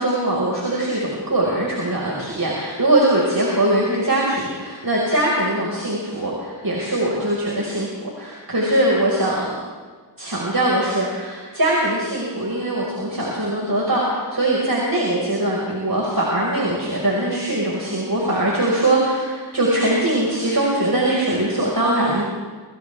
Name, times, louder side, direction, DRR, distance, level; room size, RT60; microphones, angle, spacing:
voice 1, 0.0-9.6 10.2-22.2, right 1 dB, 50° right, -4 dB, 5.4 m, -21 dB
28.5 x 27.0 x 3.6 m, 1.5 s
wide cardioid pair, 55°, 44 cm